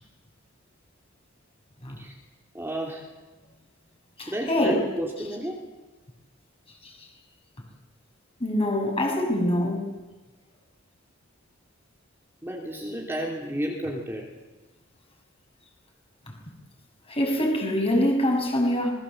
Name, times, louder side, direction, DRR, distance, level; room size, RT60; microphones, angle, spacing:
voice 1, 2.5-3.0 4.3-5.6 12.4-14.3, right 1 dB, 10° right, 2.9 m, -32 dB
voice 2, 4.2-4.9 6.8-6.9 8.4-9.9 17.1-18.9, left 1 dB, 30° left, 6.2 m, -24 dB
26.5 x 20.5 x 7.8 m
head